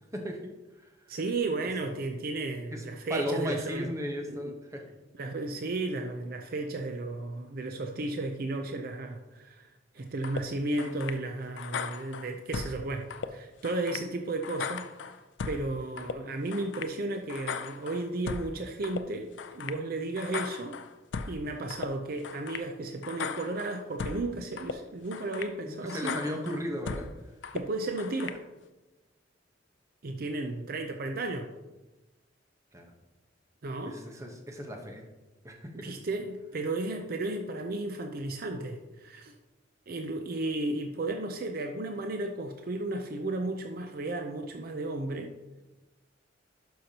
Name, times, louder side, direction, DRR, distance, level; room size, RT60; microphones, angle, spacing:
voice 1, 1.1-3.9 4.2-4.5 5.1-9.7 9.9-14.9 15.5-20.8 21.3-26.1 27.5-28.4 30.0-31.5 33.6-34.0 35.7-39.3 39.9-45.3, right 2 dB, 50° right, 5 dB, 0.5 m, -34 dB
voice 2, 3.1-4.8 25.6-27.1 32.7-32.9 33.8-35.0 35.4-35.7, equal, 15° right, 1 dB, 1.0 m, -35 dB
sound 1, 10.2-10.4 10.8-11.2 11.6-12.8 13.1-13.3 13.6-14.1 14.4-15.6 16.0-16.2 16.5-16.9 17.3-18.5 18.8-19.0 19.4-19.8 20.2-21.3 21.7-21.9 22.2-22.7 23.0-24.2 24.6-24.8 25.1-25.5 25.9-27.1 27.4-27.6 28.0-28.4, left 5 dB, 70° left, 0.4 m, -37 dB
11.5 x 5.7 x 2.9 m, 1.1 s
head